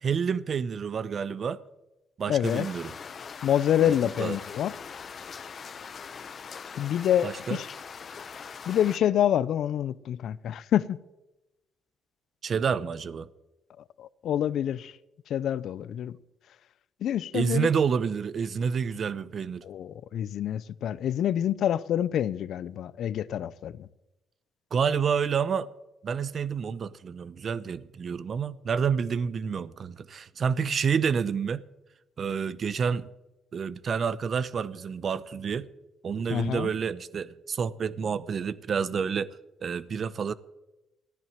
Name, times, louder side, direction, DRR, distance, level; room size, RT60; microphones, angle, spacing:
voice 1, 0.0-1.6 2.2-2.9 3.8-3.9 4.2-4.4 7.2-7.6 12.4-13.3 17.3-19.6 24.7-25.7 26.0-31.6 32.2-33.1 33.5-35.7 36.0-40.3, right 6 dB, 50° right, 0.8 m, -29 dB
voice 2, 2.3-2.7 3.4-4.7 6.8-7.7 8.7-11.0 14.0-14.9 15.3-16.2 17.0-17.7 19.6-23.9 36.3-36.7, left 10 dB, 70° left, 0.5 m, -27 dB
sound 1, 2.4-9.0, left 6 dB, 50° left, 0.9 m, -42 dB
14.0 x 11.0 x 7.3 m
cardioid pair, 90°, 0 cm